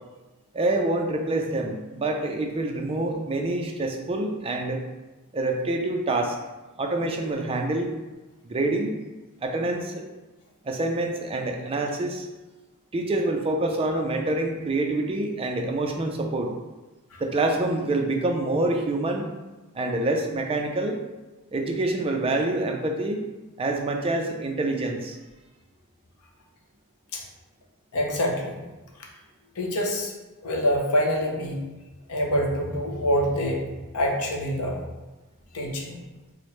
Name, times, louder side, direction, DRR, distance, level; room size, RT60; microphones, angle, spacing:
voice 1, 0.5-4.8 5.3-6.4 6.8-7.9 8.4-9.0 9.4-10.0 10.6-12.3 12.9-16.5 17.2-19.2 19.7-21.0 21.5-23.3 23.6-25.2, right 2 dB, 25° right, 3 dB, 0.4 m, -26 dB
voice 2, 27.9-28.6 29.6-30.1 30.4-31.6 32.1-33.6 33.9-34.8 35.5-36.0, equal, 85° left, 0 dB, 0.7 m, -25 dB
4.6 x 2.1 x 3.1 m, 1.1 s
head